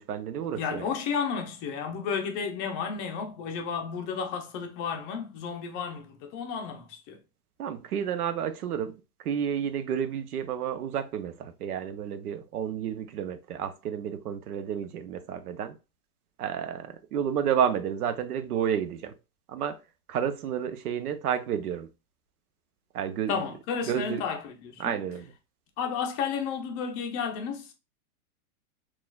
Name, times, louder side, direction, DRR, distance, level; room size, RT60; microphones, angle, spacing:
voice 1, 0.0-0.9 7.6-8.9 9.2-15.8 16.4-19.1 19.5-19.8 20.1-21.9 22.9-23.4 23.9-24.2 24.8-25.3, right 8 dB, 80° right, 0.8 m, -30 dB
voice 2, 0.5-7.2 23.3-24.9 25.8-27.7, left 6 dB, 25° left, 0.5 m, -32 dB
6.0 x 2.4 x 2.3 m
hypercardioid pair, 150°, 44 cm